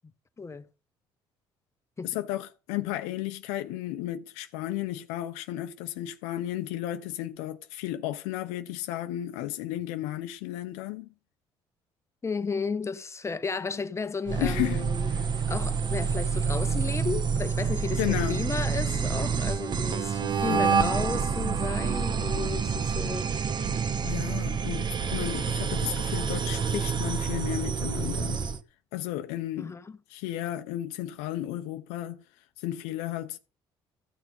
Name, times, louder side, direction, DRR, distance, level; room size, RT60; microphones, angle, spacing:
voice 1, 0.4-0.7 2.0-2.1 12.2-23.3 29.6-30.0, left 4 dB, 25° left, 1.2 m, -34 dB
voice 2, 2.0-11.1 14.4-15.3 18.0-18.5 20.2-20.9 24.0-28.4 28.9-29.7 30.1-32.2 32.6-33.4, left 14 dB, 85° left, 0.9 m, -33 dB
sound 1, 14.3-28.6, right 6 dB, 45° right, 1.3 m, -28 dB
14.5 x 6.1 x 5.4 m
supercardioid pair, 70°, 11 cm